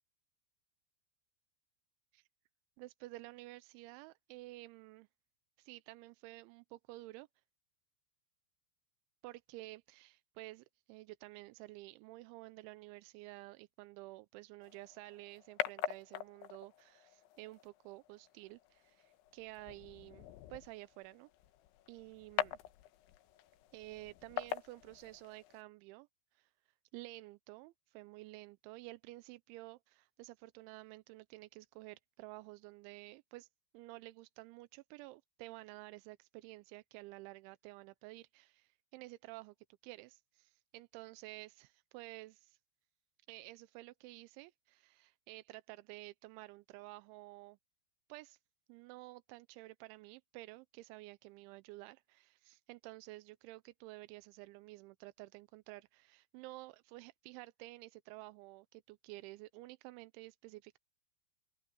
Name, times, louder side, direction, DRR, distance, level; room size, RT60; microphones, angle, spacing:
voice 1, 2.8-5.1 5.6-7.3 9.2-21.3 21.9-22.6 23.7-26.1 26.3-26.5 26.9-33.5 33.7-39.6 39.8-42.6 43.3-47.6 48.1-48.4 48.7-60.8, right 20 dB, 90° right, 3.0 m, -52 dB
sound 1, 14.6-25.6, left 13 dB, 85° left, 3.3 m, -44 dB
open air
omnidirectional pair, 5.3 m